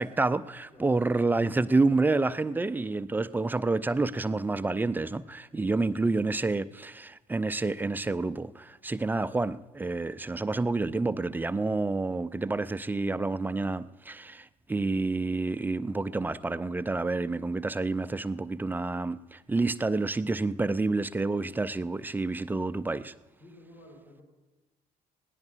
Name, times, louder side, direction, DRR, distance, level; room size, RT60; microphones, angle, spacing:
voice 1, 0.0-23.1, right 3 dB, 10° right, 0.4 m, -29 dB
voice 2, 5.5-5.9 23.4-24.2, left 1 dB, 35° left, 3.8 m, -54 dB
21.0 x 16.5 x 2.5 m
figure-of-eight pair, 55°, 20 cm